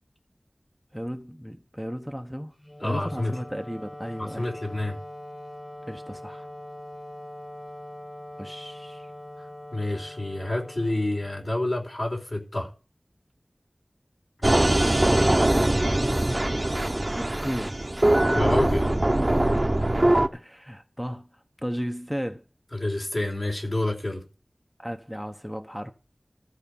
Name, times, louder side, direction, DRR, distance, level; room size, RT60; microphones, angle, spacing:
voice 1, 0.9-2.5 2.8-4.5 5.8-6.5 8.4-9.1 14.6-15.3 17.1-17.8 18.2-18.3 19.3-19.5 20.3-22.4 24.8-25.9, equal, ahead, 1.0 m, -35 dB
Wind instrument woodwind instrument, 2.6-11.9, left 1 dB, 25° left, 2.0 m, -42 dB
voice 2, 2.8-3.3 4.2-5.0 9.7-12.7 18.3-19.0 22.7-24.2, left 1 dB, 55° left, 4.6 m, -28 dB
sound 1, 14.4-20.3, right 1 dB, 35° right, 1.0 m, -22 dB
15.0 x 5.0 x 7.0 m
wide cardioid pair, 50°, 0 cm